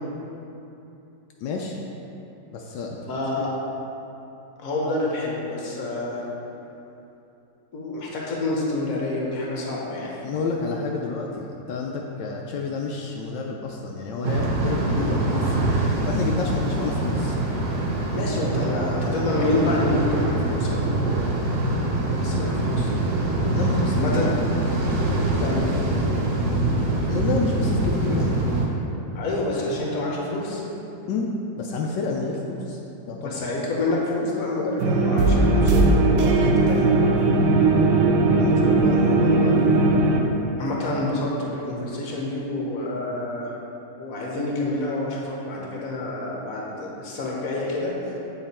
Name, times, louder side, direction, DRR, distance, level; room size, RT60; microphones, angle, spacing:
voice 1, 1.4-1.8 2.5-3.0 3.4-3.5 10.2-15.6 16.0-17.4 23.4-24.0 27.1-28.3 31.1-31.3 31.5-32.8 33.1-33.4 38.4-39.8, left 4 dB, 80° left, 0 dB, 1.2 m, -29 dB
voice 2, 3.1-3.5 4.6-6.2 7.7-10.1 18.1-21.1 21.7-22.9 23.9-24.3 25.4-25.6 29.1-30.6 33.2-36.9 40.6-43.5 44.0-48.1, left 2 dB, 55° left, -3 dB, 1.4 m, -28 dB
sound 1, 14.2-28.7, right 2 dB, 55° right, 1.1 m, -24 dB
sound 2, 34.8-40.2, right 2 dB, 75° right, 1.3 m, -18 dB
7.9 x 4.2 x 4.3 m, 2.9 s
omnidirectional pair, 1.9 m